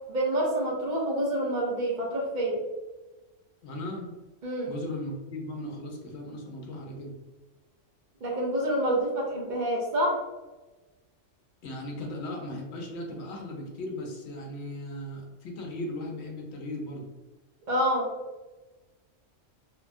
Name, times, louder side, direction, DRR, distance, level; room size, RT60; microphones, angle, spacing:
voice 1, 0.1-2.6 4.4-4.7 8.2-10.2 17.7-18.1, right 1 dB, 50° right, -3 dB, 0.6 m, -27 dB
voice 2, 3.6-4.1 4.6-7.2 11.6-17.1, left 1 dB, 65° left, 0 dB, 0.9 m, -37 dB
2.9 x 2.2 x 2.5 m, 1.1 s
omnidirectional pair, 1.3 m